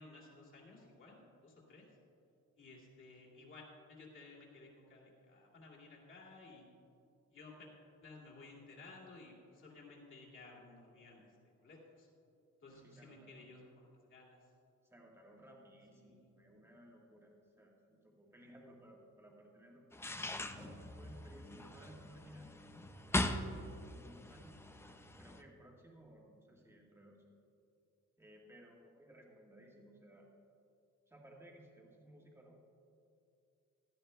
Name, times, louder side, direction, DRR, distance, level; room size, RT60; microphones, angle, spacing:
voice 1, 0.0-1.9 2.6-6.6 7.3-7.7 8.0-12.1 12.6-14.4 15.9-16.3, left 3 dB, 40° left, -3 dB, 2.5 m, -56 dB
voice 2, 12.7-13.4 14.8-20.0 20.5-22.5 23.3-24.6 25.2-27.2 28.2-30.3 31.1-32.6, equal, 10° right, -2 dB, 1.5 m, -59 dB
sound 1, 19.9-25.4, left 2 dB, 10° left, 0.3 m, -41 dB
16.5 x 12.5 x 2.3 m, 2.6 s
cardioid pair, 165°, 30 cm